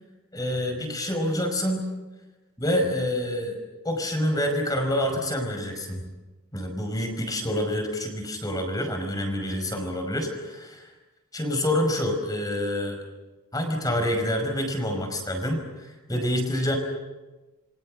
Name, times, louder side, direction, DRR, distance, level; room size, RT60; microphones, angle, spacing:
voice 1, 0.3-1.8 2.6-3.6 3.8-6.1 6.5-10.9 11.3-13.0 13.5-16.8, left 1 dB, 20° left, 4 dB, 5.4 m, -27 dB
28.5 x 24.0 x 6.5 m, 1.2 s
head